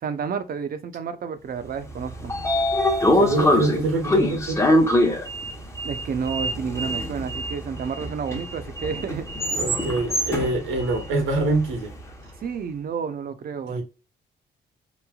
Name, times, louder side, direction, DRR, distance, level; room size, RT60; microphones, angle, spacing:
voice 1, 0.0-2.3 5.8-9.3 12.4-13.8, right 6 dB, 50° right, 0.6 m, -30 dB
Sliding door, 1.9-12.0, left 1 dB, 15° left, 0.7 m, -24 dB
voice 2, 3.1-4.6 9.5-11.9 13.7-13.8, right 2 dB, 90° right, 1.2 m, -25 dB
3.1 x 2.5 x 2.3 m
cardioid pair, 90°, 20 cm